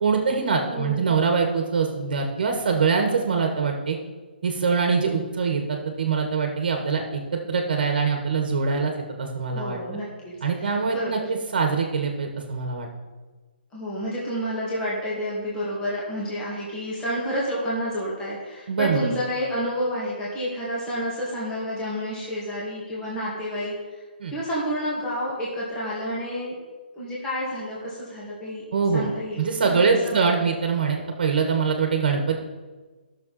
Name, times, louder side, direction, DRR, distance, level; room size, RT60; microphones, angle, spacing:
voice 1, 0.0-4.0 4.4-8.9 9.2-9.8 10.4-12.9 18.7-19.1 24.2-24.3 28.7-29.1 29.4-32.4, right 5 dB, 55° right, 3 dB, 1.5 m, -23 dB
voice 2, 0.7-1.1 9.5-10.7 10.9-11.2 13.7-23.7 24.3-26.5 26.9-28.6 28.9-30.2, equal, 10° left, -7 dB, 2.0 m, -30 dB
14.0 x 6.6 x 4.2 m, 1.3 s
hypercardioid pair, 165°, 6 cm